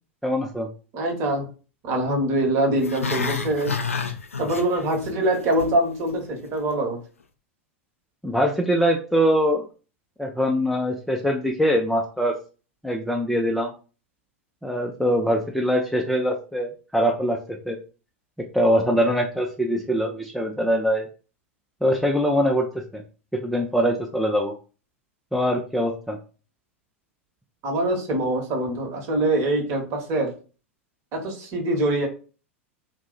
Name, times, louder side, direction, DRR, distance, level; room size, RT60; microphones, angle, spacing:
voice 1, 0.2-0.7 8.2-9.6 10.2-12.3 12.8-13.7 14.6-17.4 17.7-17.8 18.5-21.1 21.8-22.7 22.9-23.0 23.3-24.5 25.3-26.2, equal, ahead, 1 dB, 0.4 m, -23 dB
voice 2, 0.9-1.5 1.8-3.7 4.4-7.0 27.6-30.3 31.1-32.1, right 1 dB, 40° right, 2 dB, 1.0 m, -24 dB
Growling, 2.8-5.1 5.4-5.8 6.1-6.2, left 5 dB, 85° left, 0.4 m, -29 dB
2.7 x 2.0 x 3.7 m, 0.36 s
figure-of-eight pair, 90°, 7 cm